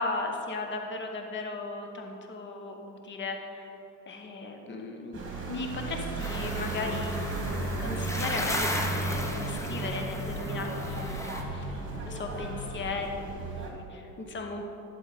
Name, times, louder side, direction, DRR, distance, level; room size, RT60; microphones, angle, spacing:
voice 1, 0.0-3.7 4.1-14.6, left 3 dB, 25° left, 3 dB, 1.0 m, -37 dB
sound 1, 5.1-13.7, right 2 dB, 25° right, 1.9 m, -34 dB
sound 2, 6.2-11.4, left 1 dB, 5° left, 0.7 m, -36 dB
11.5 x 4.4 x 5.3 m, 2.9 s
figure-of-eight pair, 70°, 49 cm